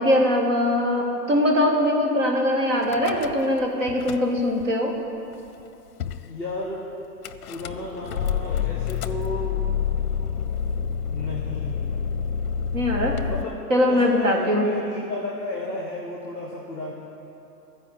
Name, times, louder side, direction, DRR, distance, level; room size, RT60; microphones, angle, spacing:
voice 1, 0.0-5.0 12.7-13.3 13.7-14.7, left 1 dB, 50° right, 0 dB, 1.7 m, -21 dB
Car / Engine starting / Idling, 2.8-3.6 3.9-4.7 5.3-5.4 5.6-5.7 6.0-6.3 7.2-13.4, left 8 dB, 65° left, 0.6 m, -28 dB
voice 2, 6.2-6.9 7.5-9.8 11.0-12.2 13.2-13.5 13.9-16.9, left 2 dB, 10° right, -9 dB, 0.7 m, -33 dB
14.0 x 4.9 x 7.8 m, 2.9 s
hypercardioid pair, 175°, 48 cm